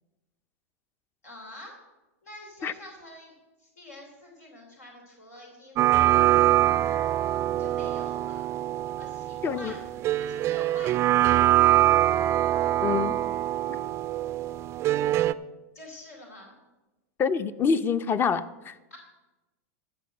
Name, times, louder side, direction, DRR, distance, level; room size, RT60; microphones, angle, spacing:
voice 1, 1.2-1.8 2.2-6.7 7.5-8.5 9.0-9.8 10.2-11.9 15.7-16.6 18.9-19.0, left 1 dB, 90° left, 0 dB, 2.9 m, -47 dB
sound 1, 5.8-15.3, right 14 dB, 35° right, 0.4 m, -24 dB
voice 2, 9.4-9.7 12.8-13.2 13.7-13.8 17.2-18.8, left 6 dB, 25° left, 14 dB, 0.6 m, -26 dB
12.5 x 5.3 x 7.7 m, 1.1 s
hypercardioid pair, 105°, 8 cm